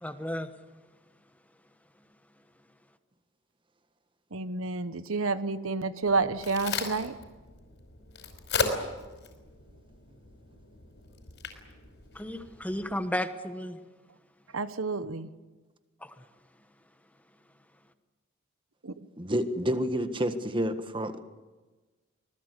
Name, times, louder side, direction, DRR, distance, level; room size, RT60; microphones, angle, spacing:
voice 1, 0.0-0.5 12.1-13.8 16.0-16.2, left 1 dB, 5° left, 8 dB, 1.2 m, -33 dB
voice 2, 4.3-7.1 14.5-15.3 18.8-18.9, right 3 dB, 80° right, 12 dB, 1.1 m, -29 dB
Crack, 6.0-12.9, left 4 dB, 60° left, 5.2 m, -37 dB
voice 3, 19.2-21.2, equal, 25° right, 9 dB, 1.5 m, -29 dB
26.0 x 20.0 x 8.2 m, 1.2 s
head